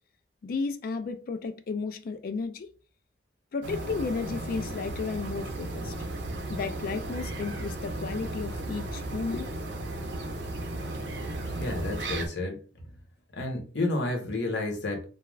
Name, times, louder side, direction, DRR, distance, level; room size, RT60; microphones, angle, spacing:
voice 1, 0.4-2.7 3.5-5.9 6.5-9.7, left 4 dB, 50° left, 0.3 m, -33 dB
sound 1, 3.6-12.3, right 2 dB, 60° right, 0.5 m, -35 dB
voice 2, 11.6-12.6 13.3-15.1, left 2 dB, 65° left, 0.8 m, -30 dB
2.3 x 2.3 x 3.1 m
head